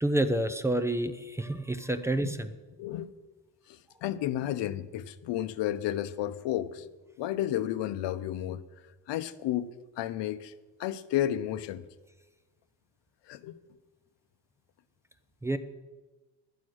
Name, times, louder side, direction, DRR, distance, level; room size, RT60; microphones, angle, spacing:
voice 1, 0.0-2.5 15.4-15.6, right 1 dB, 5° right, 0.4 m, -28 dB
voice 2, 2.8-3.1 3.7-6.9 7.2-8.6 9.1-9.7 10.0-10.5 10.8-11.8 13.3-13.6, left 12 dB, 80° left, 0.8 m, -32 dB
12.0 x 9.2 x 6.3 m
cardioid pair, 160°, 42 cm